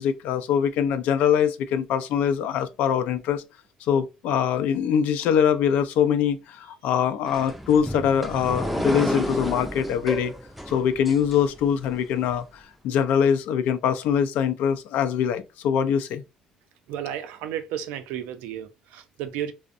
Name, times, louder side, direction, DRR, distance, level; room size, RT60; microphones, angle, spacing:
voice 1, 0.0-3.4 3.8-10.3 10.7-16.2, left 8 dB, 75° left, 0.3 m, -23 dB
sound 1, 7.3-11.9, equal, ahead, 0.4 m, -31 dB
voice 2, 16.9-19.5, right 10 dB, 90° right, 0.4 m, -33 dB
2.5 x 2.0 x 2.4 m
cardioid pair, 100°, 3 cm